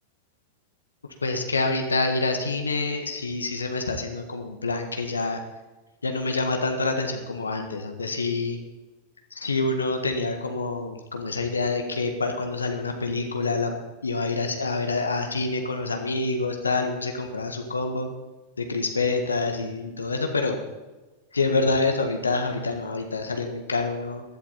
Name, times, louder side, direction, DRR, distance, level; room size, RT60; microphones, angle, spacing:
voice 1, 1.2-5.4 6.0-8.6 9.4-13.7 14.0-18.1 18.6-20.6 21.3-24.2, left 3 dB, 75° left, 5 dB, 1.6 m, -27 dB
15.5 x 12.0 x 4.2 m, 1.2 s
figure-of-eight pair, 90°, 0 cm